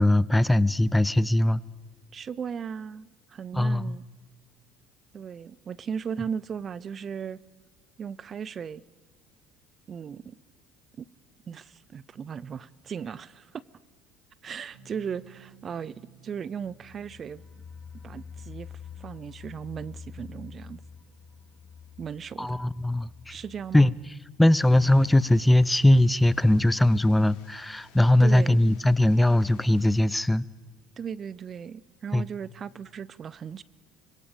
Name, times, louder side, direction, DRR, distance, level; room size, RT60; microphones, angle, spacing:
voice 1, 0.0-1.6 3.5-3.9 22.4-23.1 23.7-23.9 24.4-30.4 32.1-32.2, left 1 dB, 10° left, 0.6 m, -20 dB
voice 2, 2.1-4.0 5.1-7.4 8.0-8.8 9.9-10.4 11.0-11.1 11.5-13.6 14.4-17.4 18.0-18.7 19.0-20.8 22.0-22.6 23.3-23.9 28.2-28.6 31.0-33.6, right 7 dB, 40° right, 0.6 m, -37 dB
sound 1, 14.7-21.6, right 8 dB, 70° right, 3.3 m, -58 dB
sound 2, 16.5-27.2 27.5-27.6 28.0-28.1, left 7 dB, 25° left, 2.9 m, -48 dB
sound 3, 24.6-30.1, left 8 dB, 75° left, 3.6 m, -57 dB
25.5 x 22.0 x 5.1 m
hypercardioid pair, 70°, 0 cm